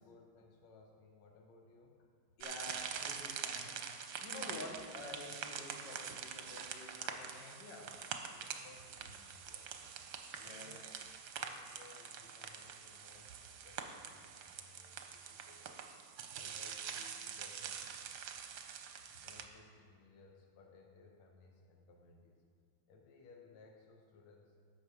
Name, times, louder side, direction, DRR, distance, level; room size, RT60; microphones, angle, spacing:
voice 1, 0.0-2.1 8.3-9.7 10.3-10.8 11.4-15.7 16.3-18.0 19.2-22.4 22.9-24.6, left 3 dB, 85° left, 1 dB, 1.7 m, -61 dB
voice 2, 2.4-3.7 4.2-8.0 10.3-10.8 18.5-18.6 19.0-19.3, left 2 dB, 60° left, 0 dB, 1.9 m, -49 dB
sound 1, 2.4-19.4, right 7 dB, 65° right, 1.1 m, -45 dB
11.5 x 7.0 x 4.8 m, 2.3 s
omnidirectional pair, 2.2 m